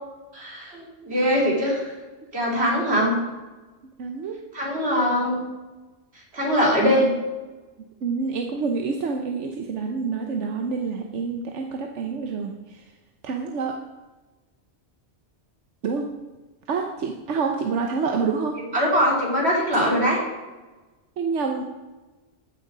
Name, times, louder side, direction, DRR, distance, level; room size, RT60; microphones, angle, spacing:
voice 1, 0.3-1.9 2.3-3.2 4.5-5.4 6.3-7.1 18.7-20.2, equal, 65° right, -3 dB, 3.5 m, -22 dB
voice 2, 4.0-4.4 8.0-12.9 13.2-13.8 15.8-16.1 16.7-18.6 21.2-21.6, right 5 dB, 90° right, 3 dB, 1.2 m, -27 dB
15.0 x 6.6 x 4.8 m, 1.2 s
omnidirectional pair, 1.2 m